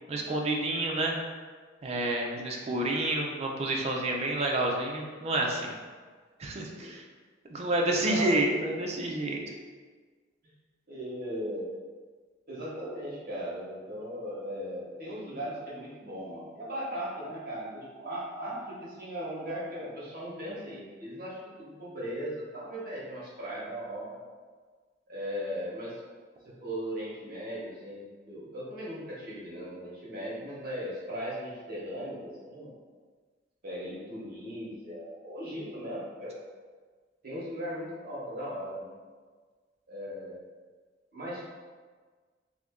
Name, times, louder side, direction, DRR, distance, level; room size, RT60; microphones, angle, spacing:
voice 1, 0.1-1.2 1.8-5.7 6.4-7.0 7.5-9.4, right 2 dB, 35° right, 0 dB, 0.4 m, -29 dB
voice 2, 7.9-8.7 10.9-11.7 12.5-24.2 25.1-25.9 26.4-32.7 33.6-36.4 37.2-38.9 39.9-40.4 41.1-41.5, equal, 50° right, -7 dB, 1.0 m, -38 dB
2.7 x 2.5 x 3.5 m, 1.5 s
head